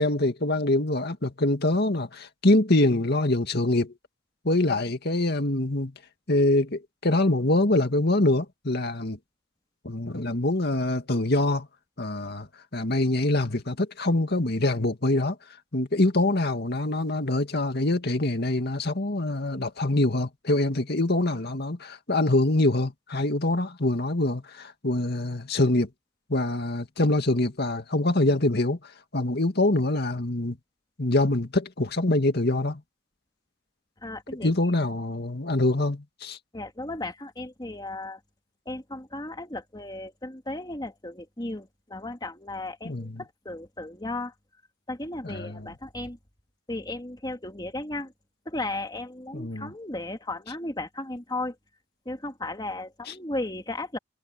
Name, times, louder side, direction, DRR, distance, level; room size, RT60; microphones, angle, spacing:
voice 1, 0.0-3.9 4.4-5.9 6.3-9.2 9.8-11.7 12.0-12.5 12.7-15.4 15.7-25.9 26.3-28.8 29.1-30.6 31.0-32.8 34.4-36.4 42.8-43.2 45.2-45.7 49.3-49.7 53.1-53.2, left 2 dB, 50° left, 2.2 m, -24 dB
voice 2, 34.0-34.5 36.5-38.2 38.7-44.3 44.9-46.2 46.7-48.1 48.5-51.5 52.1-54.0, left 2 dB, 20° left, 2.3 m, -35 dB
head